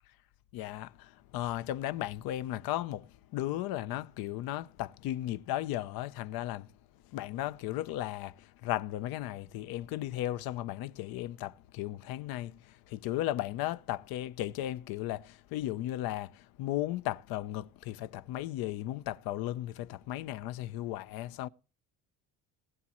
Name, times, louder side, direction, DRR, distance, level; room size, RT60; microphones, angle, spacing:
voice 1, 0.5-6.7 7.1-21.5, left 14 dB, 80° left, 0.7 m, -35 dB
20.0 x 8.6 x 3.0 m
cardioid pair, 125°, 35 cm